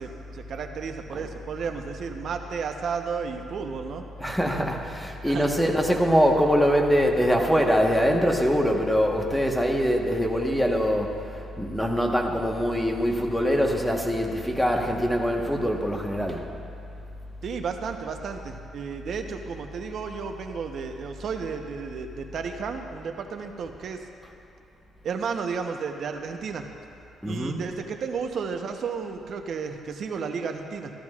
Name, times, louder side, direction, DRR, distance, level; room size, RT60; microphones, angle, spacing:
voice 1, 0.0-4.0 5.2-5.5 17.4-24.0 25.0-26.7 27.2-30.9, right 5 dB, 60° right, 5 dB, 0.9 m, -33 dB
voice 2, 4.2-16.5 27.2-27.7, equal, ahead, 1 dB, 1.2 m, -23 dB
14.0 x 13.0 x 2.4 m, 2.7 s
cardioid pair, 90°, 0 cm